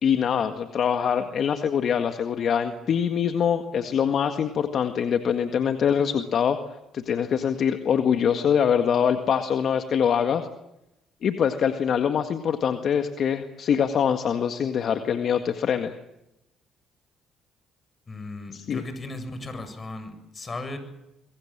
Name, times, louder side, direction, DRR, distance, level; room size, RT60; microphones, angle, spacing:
voice 1, 0.0-6.6 6.9-10.5 11.2-15.9 18.5-18.8, left 7 dB, 60° left, 7 dB, 1.8 m, -24 dB
voice 2, 18.1-20.8, left 2 dB, 35° left, 9 dB, 7.8 m, -36 dB
26.0 x 23.0 x 7.5 m, 0.90 s
hypercardioid pair, 60°, 0 cm